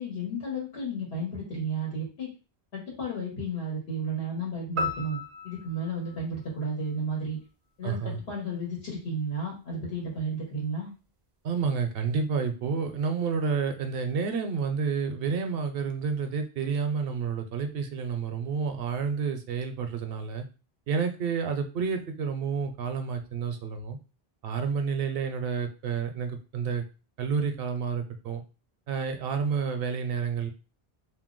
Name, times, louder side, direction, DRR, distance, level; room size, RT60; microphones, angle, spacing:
voice 1, 0.0-2.3 2.7-5.2 5.4-7.4 7.8-8.0 8.3-10.9, right 1 dB, 85° left, -3 dB, 1.3 m, -33 dB
sound 1, 4.8-7.2, left 2 dB, 45° right, 0.4 m, -36 dB
voice 2, 7.8-8.2 11.4-20.5 20.9-24.0 24.4-26.8 27.2-28.4 28.9-30.5, right 5 dB, 70° right, 6 dB, 0.8 m, -30 dB
2.6 x 2.1 x 3.7 m, 0.33 s
omnidirectional pair, 1.0 m